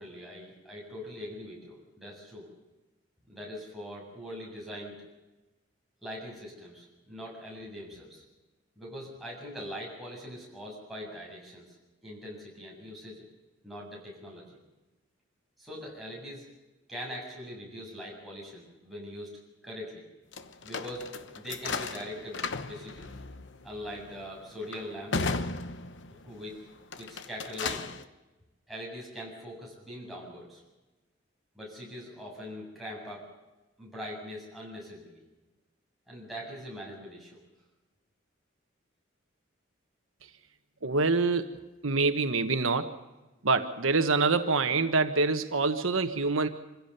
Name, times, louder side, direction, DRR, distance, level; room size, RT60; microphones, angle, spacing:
voice 1, 0.0-2.5 3.3-5.0 6.0-8.2 8.8-11.8 12.0-13.3 13.6-14.6 15.6-16.5 16.9-20.1 20.6-23.1 23.6-25.3 26.2-26.6 27.0-27.9 28.7-30.6 31.6-33.3 33.8-35.2 36.1-37.4, equal, ahead, -4 dB, 7.1 m, -42 dB
sound 1, 20.3-26.4 26.8-28.0, left 4 dB, 60° left, 1.0 m, -36 dB
voice 2, 40.8-42.9 43.4-46.5, right 3 dB, 90° right, 8 dB, 1.3 m, -26 dB
25.5 x 16.0 x 6.8 m, 1.1 s
head